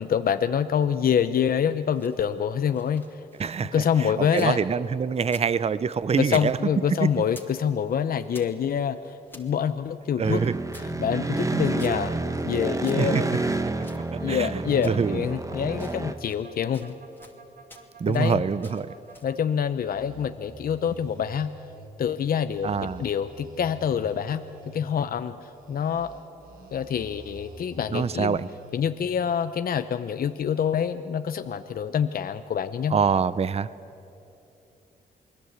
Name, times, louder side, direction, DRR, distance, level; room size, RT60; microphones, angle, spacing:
voice 1, 0.0-3.0 3.6-4.6 6.2-10.4 10.8-12.1 12.4-13.5 14.2-17.0 18.1-18.4 19.2-21.5 22.0-26.2 26.7-28.4 28.7-33.0, left 8 dB, 60° left, 10 dB, 0.8 m, -26 dB
sound 1, 1.8-4.6 4.9-6.5 6.8-7.6 7.9-9.5 10.0-12.5 12.8-14.5 14.8-15.4 15.7-16.5 16.7-17.4 17.7-18.3 18.6-19.4, left 2 dB, 10° left, 2.5 m, -52 dB
voice 2, 3.4-3.7 4.0-6.6 6.9-7.1 10.2-10.6 12.9-13.2 14.1-15.2 18.0-18.9 22.6-23.0 27.9-28.5 32.9-33.7, right 6 dB, 40° right, 16 dB, 0.7 m, -25 dB
sound 2, 10.2-16.1, right 2 dB, 20° right, 1.4 m, -29 dB
sound 3, 11.7-19.4 19.7-21.9 22.4-24.9 25.4-28.8, right 3 dB, 60° right, 3.6 m, -48 dB
28.5 x 20.5 x 8.1 m, 2.9 s
cardioid pair, 70°, 17 cm